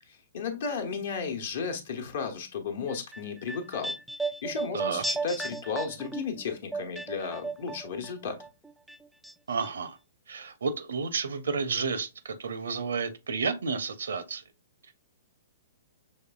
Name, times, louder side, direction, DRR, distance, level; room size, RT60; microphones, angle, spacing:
voice 1, 0.1-3.9 4.2-8.4, left 5 dB, 55° left, 1.1 m, -34 dB
sound 1, 2.9-8.1 8.4-9.3 9.6-9.7, right 3 dB, 5° right, 0.3 m, -35 dB
voice 2, 4.7-5.0 9.5-10.0 10.3-14.4, right 5 dB, 65° right, 0.7 m, -31 dB
6.3 x 3.3 x 2.3 m
figure-of-eight pair, 115°, 0 cm